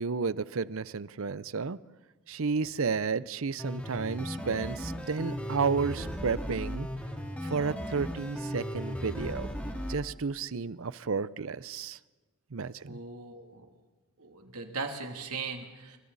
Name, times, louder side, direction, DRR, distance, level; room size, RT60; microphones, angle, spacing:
voice 1, 0.0-1.8 2.3-6.9 7.4-9.5 9.9-12.0 12.5-13.0, right 5 dB, 65° right, 0.6 m, -32 dB
sound 1, 3.6-9.9, equal, 5° left, 2.5 m, -36 dB
voice 2, 12.8-13.7 14.2-16.0, right 4 dB, 80° right, 2.9 m, -39 dB
29.0 x 25.0 x 4.1 m
head